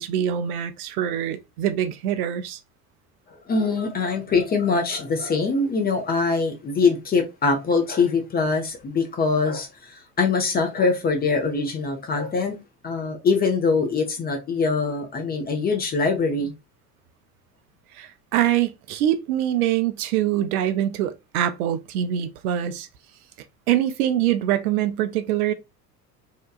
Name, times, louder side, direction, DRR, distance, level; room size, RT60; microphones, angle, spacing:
voice 1, 0.0-2.6 18.0-22.9 23.7-25.5, right 11 dB, 65° right, 0.5 m, -24 dB
voice 2, 3.5-12.6 12.8-16.5, left 4 dB, 20° left, 0.5 m, -23 dB
2.8 x 2.2 x 2.4 m
figure-of-eight pair, 65°, 48 cm